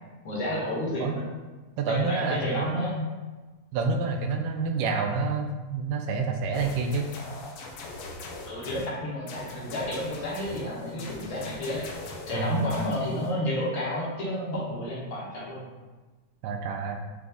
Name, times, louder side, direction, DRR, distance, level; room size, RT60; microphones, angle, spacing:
voice 1, 0.2-1.3 1.9-3.0 8.5-11.9 12.3-15.6, left 1 dB, 60° left, -6 dB, 1.3 m, -31 dB
voice 2, 1.8-3.1 3.7-7.1 12.3-12.7 16.4-17.0, right 4 dB, 90° right, 3 dB, 2.1 m, -28 dB
sound 1, 6.5-8.9 9.3-13.3, left 3 dB, 80° left, 1.5 m, -42 dB
5.9 x 2.5 x 3.4 m, 1.3 s
omnidirectional pair, 3.7 m